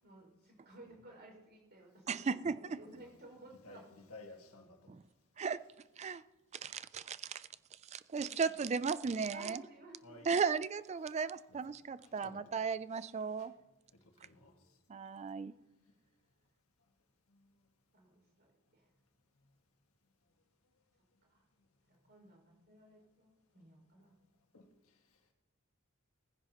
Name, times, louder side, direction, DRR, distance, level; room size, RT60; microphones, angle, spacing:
voice 1, 0.0-3.8 8.1-8.6 9.3-10.3 17.9-18.9 21.3-21.4 21.9-24.2, right 2 dB, 50° right, 5.7 m, -57 dB
voice 2, 2.1-2.8 5.4-5.6 6.0-6.2 6.6-7.5 7.9-9.6 10.3-13.5 14.9-15.5, right 5 dB, 30° right, 0.3 m, -36 dB
voice 3, 2.7-3.1 3.6-4.9 10.0-10.3 11.5-11.6 12.0-12.4 13.4-13.5 14.2-14.5 17.3-17.5 24.5-24.7, left 2 dB, 75° left, 1.9 m, -55 dB
18.5 x 15.5 x 3.0 m
head